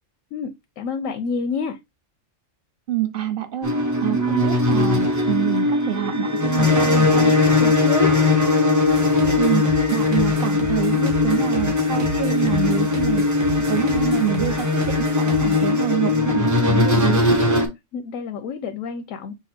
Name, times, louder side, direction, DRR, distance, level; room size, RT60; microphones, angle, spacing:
voice 1, 0.8-1.8 7.6-8.1 17.9-19.3, left 6 dB, 90° left, 1.0 m, -28 dB
voice 2, 2.9-3.7 4.0-7.4 9.4-9.6 9.9-17.4, right 11 dB, 55° right, 0.8 m, -26 dB
sound 1, 3.6-17.7, left 3 dB, 20° right, 0.6 m, -20 dB
sound 2, 8.9-15.7, right 1 dB, 80° right, 1.6 m, -33 dB
6.0 x 2.0 x 4.2 m
omnidirectional pair, 1.3 m